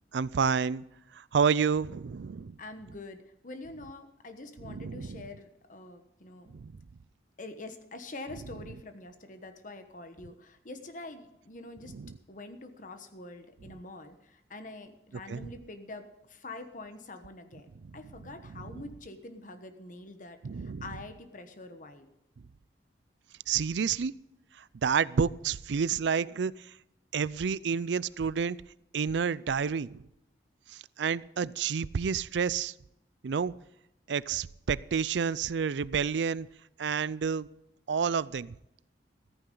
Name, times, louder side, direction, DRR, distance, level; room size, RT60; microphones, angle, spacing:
voice 1, 0.1-0.8 1.1-2.6 4.6-5.2 6.5-6.7 11.9-12.1 15.3-15.5 17.8-18.0 18.5-18.8 20.4-20.8 23.5-24.1 24.8-26.5 27.1-28.6 28.9-30.0 30.7-32.7 33.2-33.5 34.1-36.5 36.8-37.5 37.9-38.5, right 6 dB, 80° right, 20 dB, 0.4 m, -29 dB
voice 2, 2.6-6.5 7.4-11.9 12.3-22.1, left 2 dB, 45° left, 7 dB, 1.2 m, -45 dB
14.5 x 14.5 x 3.9 m, 0.84 s
head